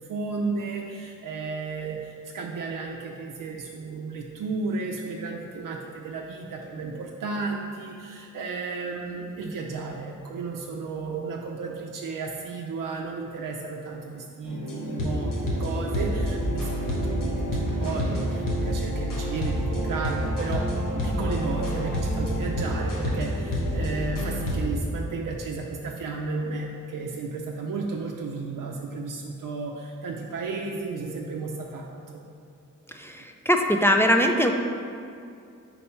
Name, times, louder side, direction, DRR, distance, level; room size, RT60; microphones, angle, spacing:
voice 1, 0.0-20.6 20.9-32.2, right 4 dB, 80° right, 0 dB, 0.5 m, -33 dB
sound 1, 14.4-24.6, equal, 90° left, 1.2 m, -28 dB
voice 2, 32.9-34.5, equal, 10° left, 3 dB, 0.3 m, -21 dB
4.3 x 4.2 x 5.6 m, 2.5 s
wide cardioid pair, 105°, 32 cm